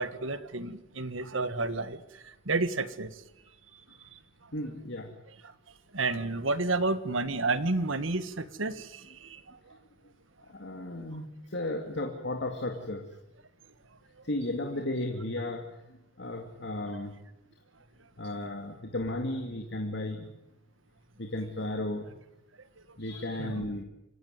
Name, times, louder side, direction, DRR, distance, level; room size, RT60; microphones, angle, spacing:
voice 1, 0.0-3.1 4.1-4.2 5.9-9.4 9.7-9.8 23.4-23.6, right 3 dB, 90° right, 13 dB, 1.6 m, -31 dB
voice 2, 4.5-5.1 9.7-9.8 10.5-13.1 14.2-17.1 18.2-20.3 21.2-22.2 23.0-23.8, left 1 dB, 60° left, 3 dB, 2.5 m, -34 dB
27.5 x 15.5 x 9.5 m, 0.87 s
head